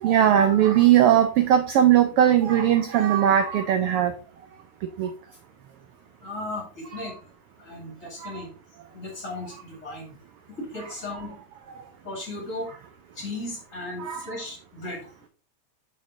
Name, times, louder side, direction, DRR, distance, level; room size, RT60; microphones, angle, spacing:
voice 1, 0.0-4.1 5.0-5.1 8.2-8.4 14.0-14.2, right 10 dB, 80° right, 8 dB, 1.3 m, -19 dB
voice 2, 6.2-7.2 7.6-8.5 8.9-10.1 10.5-11.4 12.0-12.7 13.2-15.0, left 2 dB, 30° left, 0 dB, 2.3 m, -36 dB
6.8 x 5.4 x 3.7 m, 0.37 s
omnidirectional pair, 3.3 m